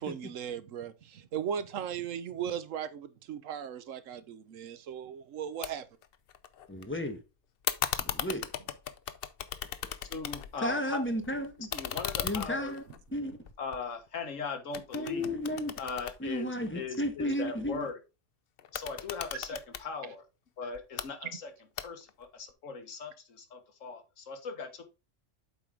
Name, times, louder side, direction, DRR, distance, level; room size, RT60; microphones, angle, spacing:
voice 1, 0.0-5.9, right 8 dB, 85° right, 1.1 m, -37 dB
sound 1, 5.6-5.7 6.0-6.8 7.6-10.7 11.1-14.3 14.7-17.0 18.6-19.9 20.7-21.1 21.8-22.2, left 9 dB, 55° left, 0.8 m, -37 dB
voice 2, 6.7-7.2 8.0-8.4 10.6-11.7 12.2-12.8 13.1-13.4 14.9-15.7 16.2-17.9, left 1 dB, 10° left, 1.1 m, -33 dB
voice 3, 10.1-11.0 11.6-12.8 13.6-15.3 15.8-16.5 16.7-18.0 18.7-20.2 20.6-21.5 21.8-24.8, left 5 dB, 85° left, 1.6 m, -39 dB
7.8 x 4.7 x 3.7 m
omnidirectional pair, 1.3 m